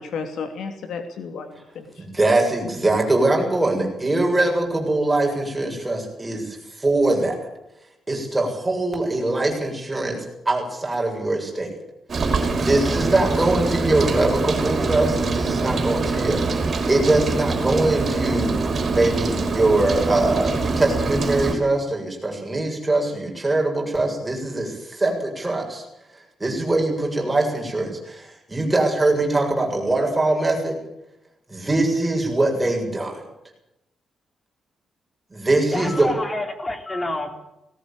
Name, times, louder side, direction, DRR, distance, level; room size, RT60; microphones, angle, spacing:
voice 1, 0.0-2.0, left 5 dB, 75° left, 6 dB, 2.8 m, -33 dB
voice 2, 2.0-7.4 8.1-11.7 12.6-25.9 26.4-30.8 31.5-33.2 35.3-36.1, right 2 dB, 10° right, 0 dB, 7.4 m, -22 dB
Rain, 12.1-21.5, right 3 dB, 40° right, 5.3 m, -24 dB
voice 3, 35.7-37.3, left 1 dB, 15° left, 6 dB, 3.6 m, -28 dB
19.5 x 18.0 x 8.8 m, 0.86 s
cardioid pair, 145°, 0 cm